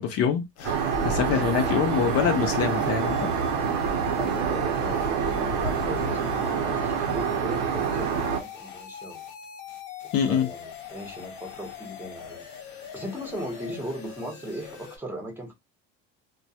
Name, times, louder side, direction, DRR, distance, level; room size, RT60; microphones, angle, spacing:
voice 1, 0.0-3.3 10.1-10.5, left 8 dB, 50° left, 0.6 m, -25 dB
sound 1, 0.6-15.0, left 7 dB, 85° left, 1.1 m, -42 dB
Aircraft, 0.6-8.4, right 6 dB, 90° right, 0.8 m, -26 dB
voice 2, 4.2-9.3 10.0-12.4 12.9-15.5, equal, 5° right, 0.8 m, -38 dB
2.2 x 2.2 x 2.7 m
cardioid pair, 125°, 31 cm